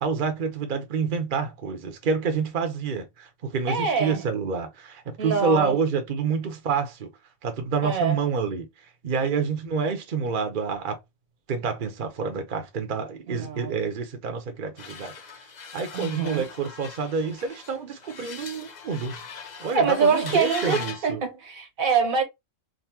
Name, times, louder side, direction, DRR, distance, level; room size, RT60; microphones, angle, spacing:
voice 1, 0.0-7.1 7.4-8.7 9.0-11.0 11.5-15.1 15.7-19.2 19.6-21.2, right 5 dB, 45° right, 0.8 m, -28 dB
voice 2, 3.7-4.2 5.2-5.8 7.8-8.2 13.3-13.8 15.9-16.4 19.7-22.2, right 5 dB, 80° right, 1.6 m, -25 dB
sound 1, 14.8-21.1, left 6 dB, 45° left, 0.6 m, -40 dB
3.8 x 2.6 x 2.7 m
omnidirectional pair, 1.4 m